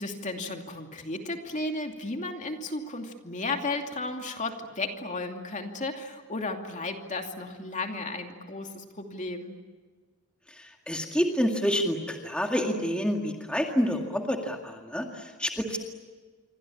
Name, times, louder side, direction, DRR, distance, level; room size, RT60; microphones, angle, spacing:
voice 1, 0.0-9.6, left 2 dB, 35° left, 4 dB, 2.7 m, -34 dB
voice 2, 10.6-15.8, equal, 5° left, 2 dB, 2.1 m, -28 dB
27.5 x 24.5 x 8.7 m, 1.4 s
head